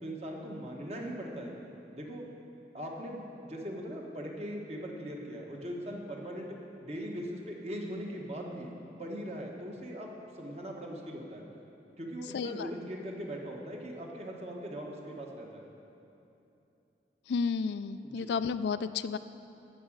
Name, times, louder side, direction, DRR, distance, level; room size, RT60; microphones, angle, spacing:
voice 1, 0.0-1.5 1.9-2.3 2.7-6.5 6.8-8.7 9.0-11.4 12.0-15.7 18.0-18.3, equal, 35° right, 0 dB, 1.3 m, -40 dB
voice 2, 12.3-12.7 17.3-19.2, left 5 dB, 75° left, 13 dB, 0.3 m, -32 dB
13.5 x 4.9 x 8.9 m, 2.8 s
head